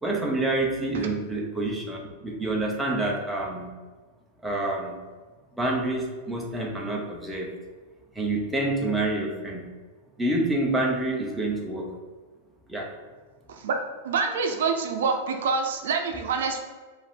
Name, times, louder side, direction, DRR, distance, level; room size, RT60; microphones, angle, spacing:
voice 1, 0.0-3.7 4.4-5.0 5.6-7.5 8.1-9.7 10.2-11.9 12.7-12.9, right 2 dB, 5° right, -2 dB, 0.6 m, -27 dB
voice 2, 13.5-16.6, right 5 dB, 80° right, 5 dB, 0.6 m, -26 dB
4.7 x 2.5 x 3.5 m, 1.4 s
supercardioid pair, 165°, 0 cm